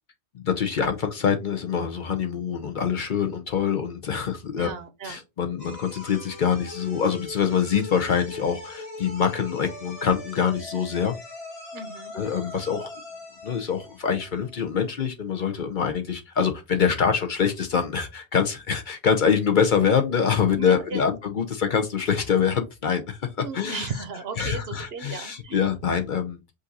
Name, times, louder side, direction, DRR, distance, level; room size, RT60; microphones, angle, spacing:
voice 1, 0.3-4.7 5.0-11.2 12.1-12.9 13.4-23.3 23.5-23.9 24.4-26.5, left 7 dB, 50° left, 0.7 m, -25 dB
voice 2, 4.5-5.2 11.7-12.1 20.6-21.0 23.4-25.6, right 5 dB, 65° right, 1.0 m, -35 dB
sound 1, 5.6-14.8, left 2 dB, 30° left, 1.5 m, -41 dB
5.1 x 2.6 x 3.9 m
omnidirectional pair, 1.1 m